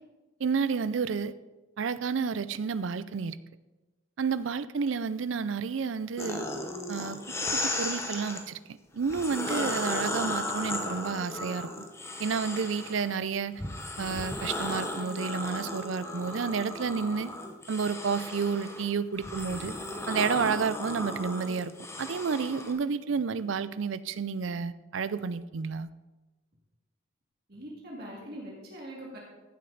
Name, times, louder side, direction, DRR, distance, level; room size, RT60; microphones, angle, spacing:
voice 1, 0.4-1.3 1.8-3.4 4.2-6.5 6.9-7.2 7.5-11.9 12.2-13.6 14.0-17.3 17.7-19.7 20.1-25.9, right 5 dB, 75° right, 15 dB, 0.5 m, -30 dB
sound 1, 6.2-8.4 9.0-13.1 13.6-22.7, left 1 dB, 15° left, 0.9 m, -35 dB
voice 2, 27.5-29.2, right 1 dB, 50° right, -3 dB, 2.2 m, -42 dB
14.5 x 7.6 x 4.0 m, 1.2 s
head